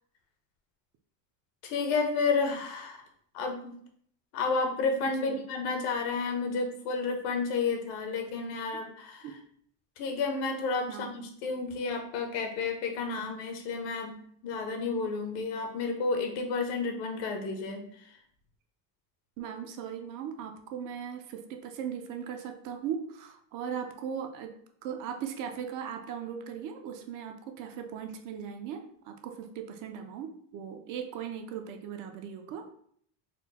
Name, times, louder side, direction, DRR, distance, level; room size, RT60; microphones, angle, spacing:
voice 1, 1.6-3.0 3.3-3.7 4.3-9.3 10.0-14.2 14.4-17.8, left 4 dB, 70° left, 4 dB, 0.9 m, -31 dB
voice 2, 19.4-32.7, right 8 dB, 50° right, 5 dB, 0.5 m, -38 dB
4.3 x 2.1 x 4.0 m, 0.64 s
cardioid pair, 170°, 42 cm